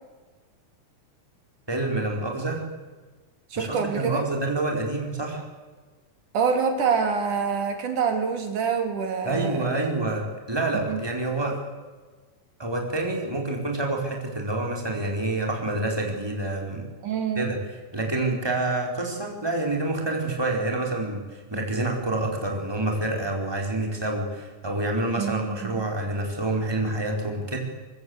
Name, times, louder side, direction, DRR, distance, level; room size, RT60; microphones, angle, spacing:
voice 1, 1.7-2.6 3.5-5.4 9.2-11.6 12.6-16.8 17.3-17.6 17.9-27.6, right 2 dB, 5° right, 0 dB, 4.8 m, -27 dB
voice 2, 3.5-4.3 6.3-9.8 10.9-11.0 17.0-17.5 25.2-25.8, right 6 dB, 75° right, 5 dB, 4.1 m, -26 dB
24.0 x 23.0 x 8.2 m, 1.3 s
omnidirectional pair, 3.6 m